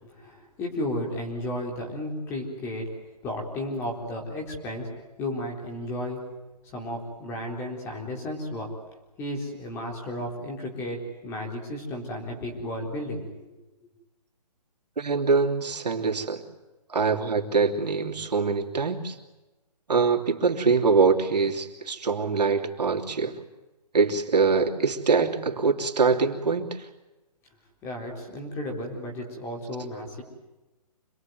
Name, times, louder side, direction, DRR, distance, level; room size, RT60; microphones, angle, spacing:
voice 1, 0.0-2.9 3.2-4.9 5.2-6.2 6.7-8.7 9.2-13.5 27.8-30.2, left 1 dB, 10° left, 1 dB, 3.9 m, -33 dB
voice 2, 15.0-16.4 16.9-19.2 19.9-23.4 23.9-26.9, right 4 dB, 80° right, 4 dB, 3.1 m, -24 dB
26.5 x 20.5 x 9.4 m, 1.1 s
hypercardioid pair, 170°, 21 cm